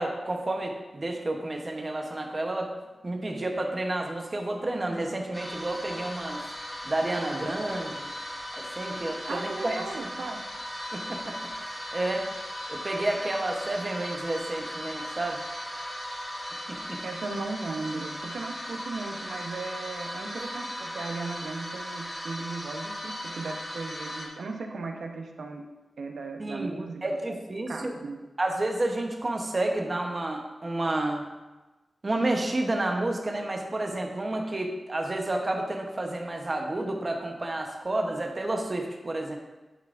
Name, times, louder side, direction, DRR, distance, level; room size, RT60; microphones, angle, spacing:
voice 1, 0.0-2.7 3.0-6.4 6.8-8.1 8.6-10.1 10.9-11.4 11.9-12.3 12.7-15.4 16.7-17.0 26.4-27.9 28.4-31.2 32.0-39.3, right 2 dB, 30° right, 2 dB, 0.9 m, -30 dB
sound 1, 5.3-24.3, equal, 10° left, 1.3 m, -37 dB
voice 2, 9.3-10.4 17.0-25.7 26.0-27.4 27.7-28.2, right 3 dB, 80° right, 3 dB, 0.8 m, -37 dB
11.0 x 5.5 x 2.5 m, 1.2 s
wide cardioid pair, 155°, 0 cm